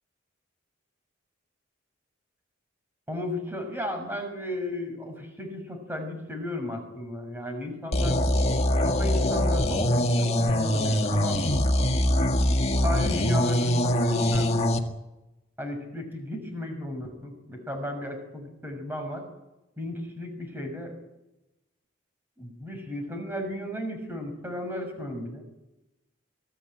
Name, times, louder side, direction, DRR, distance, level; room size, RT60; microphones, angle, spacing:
voice 1, 3.1-8.2 8.8-11.4 12.8-14.6 15.6-19.2 19.8-21.0 22.4-25.4, left 1 dB, 10° right, 4 dB, 6.2 m, -34 dB
sound 1, 7.9-14.8, left 1 dB, 30° left, 1.8 m, -23 dB
24.5 x 17.0 x 9.0 m, 0.96 s
head